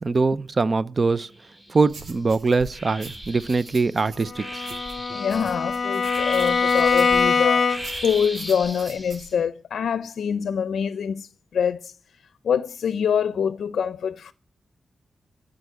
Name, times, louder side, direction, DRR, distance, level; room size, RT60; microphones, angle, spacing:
voice 1, 0.0-1.3 1.7-4.6, right 4 dB, 35° right, 0.5 m, -22 dB
sound 1, 1.3-2.1 2.7-9.3, equal, 10° left, 7.3 m, -38 dB
sound 2, 1.9-7.4 7.8-9.3, right 3 dB, 75° right, 2.8 m, -43 dB
Bowed string instrument, 4.3-8.1, left 5 dB, 45° left, 0.8 m, -23 dB
voice 2, 5.1-7.7 8.0-11.9 12.4-14.3, left 7 dB, 90° left, 0.5 m, -25 dB
14.0 x 5.3 x 9.1 m
wide cardioid pair, 135°, 0 cm